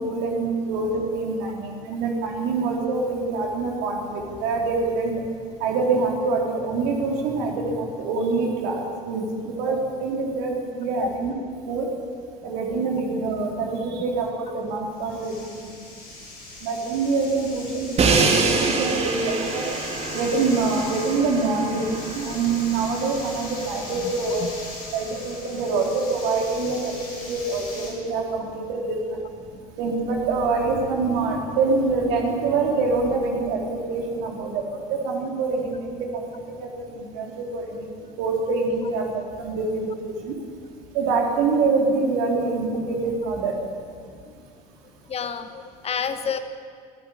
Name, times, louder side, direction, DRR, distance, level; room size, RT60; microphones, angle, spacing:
voice 1, 0.0-5.1 5.6-11.3 11.7-11.9 12.4-15.7 16.6-19.6 20.1-24.5 24.9-26.9 27.3-29.2 29.8-37.9 38.2-40.3 40.9-43.5, right 3 dB, 60° right, 0 dB, 3.9 m, -25 dB
sound 1, 14.7-27.9, left 2 dB, 65° left, 6.0 m, -39 dB
Crash cymbal, 18.0-24.0, right 4 dB, 30° right, 2.7 m, -26 dB
voice 2, 45.1-46.4, left 7 dB, 30° left, 10 dB, 1.3 m, -29 dB
23.5 x 15.0 x 8.7 m, 2.1 s
figure-of-eight pair, 60°, 20 cm